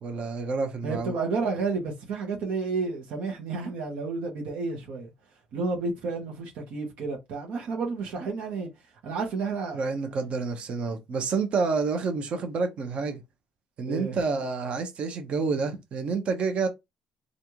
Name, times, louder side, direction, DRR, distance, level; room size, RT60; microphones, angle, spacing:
voice 1, 0.0-1.1 9.7-13.2 13.8-16.7, right 4 dB, 55° right, 1.0 m, -28 dB
voice 2, 0.8-5.1 5.5-8.7 9.0-9.8 13.9-14.2, right 4 dB, 80° right, 1.1 m, -31 dB
3.2 x 2.6 x 2.9 m
cardioid pair, 100°, 2 cm